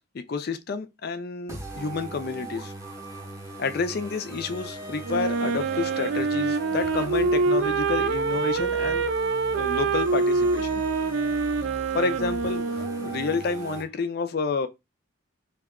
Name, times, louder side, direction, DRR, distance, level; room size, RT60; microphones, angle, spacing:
voice 1, 0.1-2.7 3.6-9.1 9.5-10.8 11.9-14.7, left 4 dB, 50° left, 0.4 m, -29 dB
sound 1, 1.5-13.8, right 1 dB, 15° right, 0.6 m, -39 dB
Wind instrument woodwind instrument, 5.0-13.4, right 4 dB, 70° right, 0.4 m, -25 dB
2.7 x 2.3 x 3.5 m
head